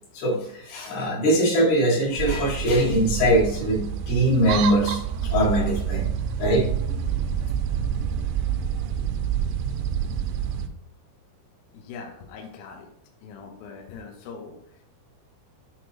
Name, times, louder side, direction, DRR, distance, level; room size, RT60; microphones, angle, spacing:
voice 1, 0.1-6.1 6.4-6.7, right 1 dB, 65° left, -4 dB, 3.6 m, -22 dB
sound 1, 2.2-10.7, right 8 dB, 85° right, 2.6 m, -27 dB
voice 2, 11.7-12.9 13.2-14.5, left 5 dB, 80° left, 2 dB, 2.2 m, -41 dB
8.6 x 3.7 x 2.9 m, 0.74 s
omnidirectional pair, 5.2 m